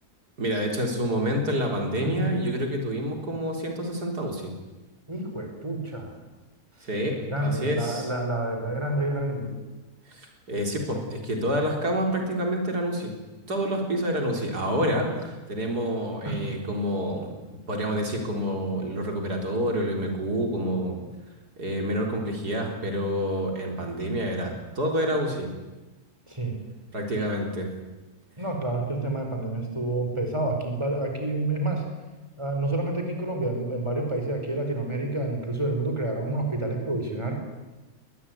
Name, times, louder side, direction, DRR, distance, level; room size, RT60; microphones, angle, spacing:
voice 1, 0.4-4.5 6.8-8.1 10.1-13.1 13.5-17.3 17.7-21.0 21.6-25.5 26.9-27.7, equal, 90° right, 2 dB, 4.6 m, -28 dB
voice 2, 5.1-6.2 7.3-9.5 16.2-16.5 26.3-26.6 28.4-31.9 32.4-37.3, right 2 dB, 15° right, 3 dB, 4.9 m, -29 dB
21.5 x 20.0 x 9.6 m, 1.1 s
omnidirectional pair, 1.6 m